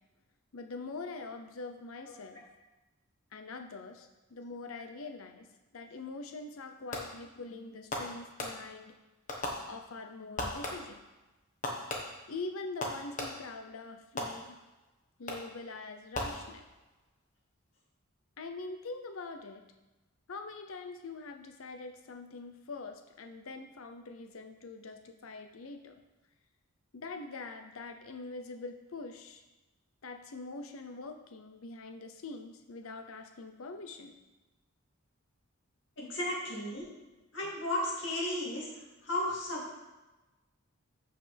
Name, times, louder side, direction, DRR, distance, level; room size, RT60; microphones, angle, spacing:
voice 1, 0.5-2.4 3.3-5.5 5.7-8.9 9.7-11.0 12.3-14.6 15.2-16.6 18.4-19.6 20.3-26.0 26.9-29.4 30.0-34.2, left 3 dB, 75° left, 6 dB, 0.7 m, -44 dB
Fireworks, 6.9-7.4 7.9-8.9 9.3-10.1 10.4-11.1 11.6-13.6 14.2-14.8 15.3-15.7 16.1-16.9, left 1 dB, 35° left, 1.2 m, -39 dB
voice 2, 36.0-36.9 37.3-39.7, left 1 dB, 55° left, -5 dB, 2.5 m, -34 dB
13.5 x 5.7 x 3.4 m, 1.1 s
head